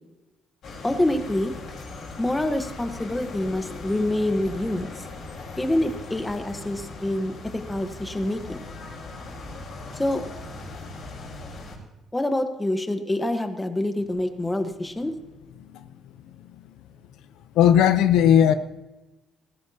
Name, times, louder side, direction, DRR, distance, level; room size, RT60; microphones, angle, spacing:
sound 1, 0.6-11.8, left 3 dB, 55° left, 4.5 m, -39 dB
voice 1, 0.8-1.5 2.2-5.0 5.6-8.6 9.9-10.2 12.1-15.1, left 1 dB, 10° left, 7 dB, 1.2 m, -26 dB
voice 2, 17.5-18.5, left 9 dB, 90° left, 11 dB, 0.8 m, -17 dB
18.5 x 15.5 x 2.9 m, 1.0 s
cardioid pair, 135°, 0 cm